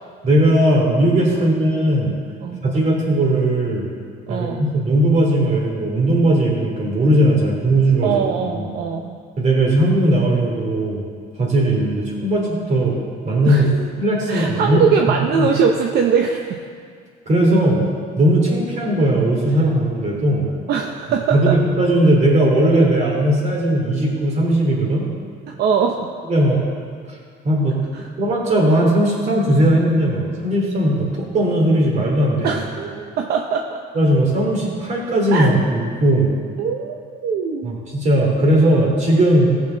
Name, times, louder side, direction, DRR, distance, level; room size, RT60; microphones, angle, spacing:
voice 1, 0.2-2.1 2.6-3.9 4.3-8.2 8.5-8.7 9.4-11.0 11.4-13.0 13.2-13.7 14.0-14.8 15.4-15.5 17.3-17.9 18.2-20.5 21.3-25.1 26.3-26.6 27.4-32.5 33.9-36.3 37.6-39.6, right 1 dB, 45° right, -1 dB, 2.8 m, -18 dB
voice 2, 4.3-4.6 8.0-9.2 13.4-13.9 14.3-16.6 20.7-21.6 25.5-26.1 27.9-28.1 32.4-33.8 35.3-35.5 36.6-37.8, right 6 dB, 70° right, 3 dB, 0.8 m, -21 dB
15.5 x 6.9 x 3.9 m, 2.1 s
cardioid pair, 110°, 17 cm